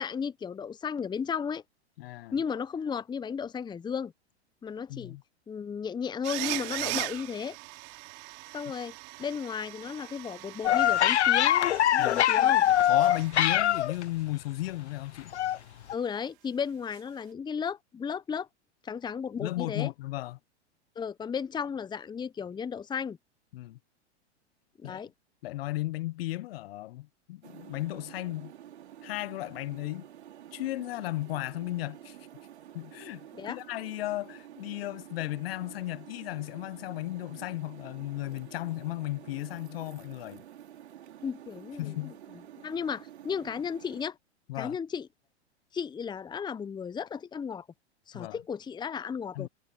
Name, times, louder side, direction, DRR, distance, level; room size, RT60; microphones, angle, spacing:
voice 1, 0.0-1.6 2.3-4.1 4.6-5.2 5.5-7.6 8.5-11.7 11.9-12.6 15.9-18.5 18.8-19.9 21.0-23.2 24.8-25.1 33.4-33.6 41.2-42.1 42.6-44.2 44.6-45.1 45.7-47.7 48.1-49.5, left 6 dB, 10° left, 1.0 m, -34 dB
voice 2, 2.0-2.4 4.9-5.2 12.0-12.2 12.9-15.3 19.4-20.4 23.5-23.8 24.8-25.0 25.4-28.5 29.0-30.0 30.5-32.2 32.7-40.4 41.8-42.1 44.5-44.8 48.1-48.4 49.3-49.5, left 17 dB, 55° left, 1.3 m, -35 dB
sound 1, 6.2-13.6 13.9-14.0 16.9-17.0, right 33 dB, 45° right, 3.4 m, -40 dB
sound 2, 10.6-14.0 15.3-15.6 15.9-16.0, left 12 dB, 75° left, 0.7 m, -23 dB
sound 3, 27.4-44.0, right 11 dB, 70° right, 3.2 m, -49 dB
hypercardioid pair, 105°, 34 cm